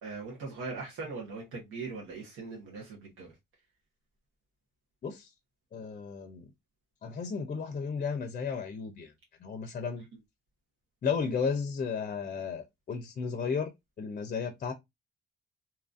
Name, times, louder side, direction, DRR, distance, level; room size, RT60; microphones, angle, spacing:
voice 1, 0.0-3.3, right 4 dB, 90° right, 1.1 m, -40 dB
voice 2, 5.7-6.4 7.0-9.1 9.4-10.0 11.0-13.7 14.0-14.7, left 5 dB, 40° left, 0.5 m, -33 dB
2.9 x 2.5 x 2.4 m
cardioid pair, 90°, 20 cm